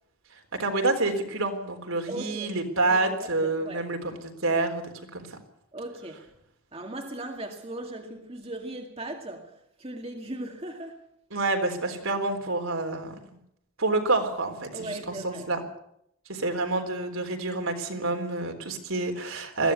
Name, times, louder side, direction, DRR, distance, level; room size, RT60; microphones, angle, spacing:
voice 1, 0.6-4.8 5.1-5.4 11.3-13.1 13.8-15.6 16.3-19.7, right 2 dB, 70° right, 3.9 m, -28 dB
voice 2, 2.1-2.6 2.9-3.9 5.7-6.3 6.7-11.0 14.7-15.5, right 1 dB, 25° right, 2.0 m, -38 dB
21.0 x 16.0 x 8.3 m
head